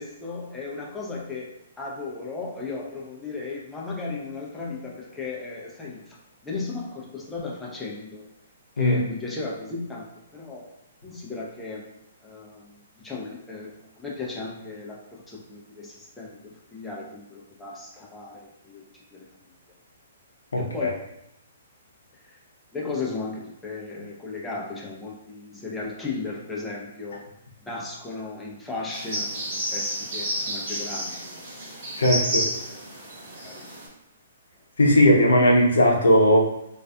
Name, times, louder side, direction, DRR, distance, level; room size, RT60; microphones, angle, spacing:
voice 1, 0.0-6.2 6.4-8.3 8.8-10.0 10.3-10.7 11.0-11.8 12.2-19.3 20.6-20.9 22.2-22.4 22.7-27.3 27.7-31.4 32.3-32.4 33.4-33.8, left 3 dB, 5° left, -5 dB, 0.5 m, -35 dB
voice 2, 20.5-20.9 32.0-32.4 34.8-36.4, equal, 80° left, -1 dB, 0.6 m, -18 dB
sound 1, 28.9-33.9, equal, 55° right, 1.0 m, -31 dB
2.4 x 2.4 x 2.2 m, 0.83 s
hypercardioid pair, 130°, 0 cm